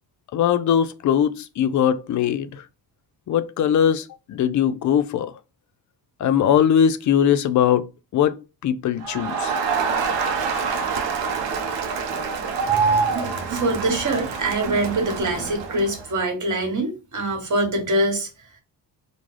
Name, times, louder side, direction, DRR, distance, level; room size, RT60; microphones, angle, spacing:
voice 1, 0.3-2.6 3.3-5.3 6.2-7.9 8.1-8.4 8.6-9.6, left 9 dB, 45° left, 0.4 m, -20 dB
Crowd, 9.0-16.0, right 5 dB, 85° right, 0.7 m, -25 dB
voice 2, 12.7-13.1 13.5-18.3, right 1 dB, 45° right, 1.2 m, -24 dB
2.3 x 2.1 x 3.1 m
cardioid pair, 75°, 43 cm